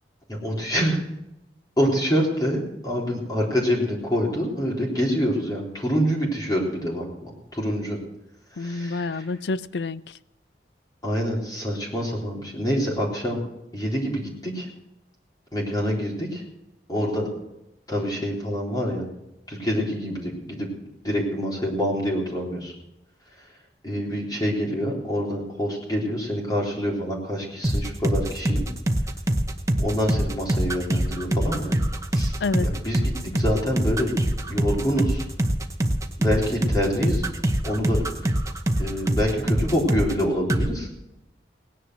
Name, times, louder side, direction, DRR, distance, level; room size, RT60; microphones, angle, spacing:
voice 1, 0.3-1.0 1.8-8.0 8.6-9.2 11.0-13.4 13.7-14.7 15.5-16.4 16.9-17.3 17.9-19.0 19.5-20.7 21.0-22.7 23.8-28.7 29.8-31.7 32.1-32.3 32.6-34.1 34.5-35.2 36.2-37.2 37.6-38.2 38.8-40.9, equal, 20° left, -3 dB, 3.8 m, -26 dB
voice 2, 8.6-10.0 32.4-32.7, left 3 dB, 70° left, 17 dB, 0.5 m, -28 dB
sound 1, 27.6-40.2 40.5-40.7, right 1 dB, 20° right, 1.1 m, -24 dB
18.0 x 10.5 x 6.2 m, 0.87 s
head